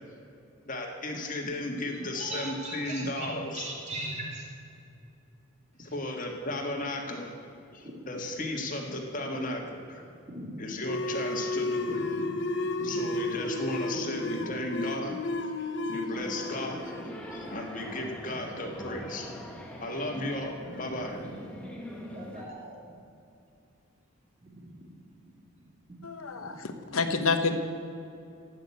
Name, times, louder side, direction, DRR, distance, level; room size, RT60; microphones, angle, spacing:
voice 1, 0.6-3.7 5.8-7.3 7.7-10.0 10.6-12.0 12.8-15.2 15.6-16.9 17.3-19.3 19.8-21.2, left 1 dB, 40° left, 2 dB, 1.8 m, -35 dB
voice 2, 2.1-4.5 7.8-7.9 10.3-10.5 11.9-12.3 12.6-12.9 17.4-17.5 21.7-21.8 22.1-22.8 24.4-24.7 26.4-26.5, right 1 dB, 30° right, -2 dB, 2.9 m, -39 dB
sound 1, 10.8-18.0, left 2 dB, 55° left, 1.0 m, -33 dB
sound 2, 16.1-22.5, equal, 5° left, 1.4 m, -43 dB
voice 3, 26.0-27.5, left 4 dB, 80° left, 7 dB, 1.0 m, -28 dB
12.5 x 8.9 x 8.4 m, 2.7 s
head